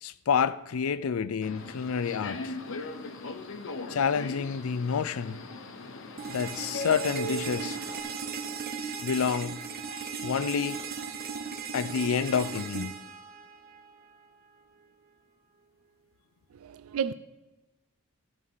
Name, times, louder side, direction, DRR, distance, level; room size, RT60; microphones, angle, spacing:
voice 1, 0.0-2.6 3.9-5.4 6.3-7.8 9.0-9.6 9.9-10.8 11.7-12.9, left 6 dB, 85° left, 0.4 m, -29 dB
Subway metro underground, 1.4-8.0, left 1 dB, 65° left, 0.9 m, -39 dB
sound 1, 1.5-13.3, equal, 30° right, 2.8 m, -56 dB
sound 2, 6.2-14.2, right 6 dB, 45° right, 0.9 m, -37 dB
voice 2, 16.6-17.1, right 7 dB, 90° right, 0.4 m, -31 dB
13.5 x 4.9 x 5.6 m
head